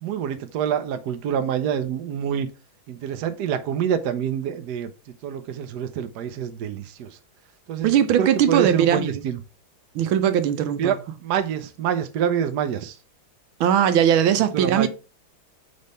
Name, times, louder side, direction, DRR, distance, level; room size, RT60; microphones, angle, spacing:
voice 1, 0.0-2.5 2.9-4.9 5.2-7.2 7.7-7.9 8.2-9.4 10.8-13.0 14.5-14.9, right 8 dB, 65° right, 1.2 m, -26 dB
voice 2, 7.8-9.2 9.9-11.0 13.6-14.9, right 9 dB, 85° right, 1.5 m, -19 dB
5.2 x 3.3 x 5.5 m
omnidirectional pair, 2.2 m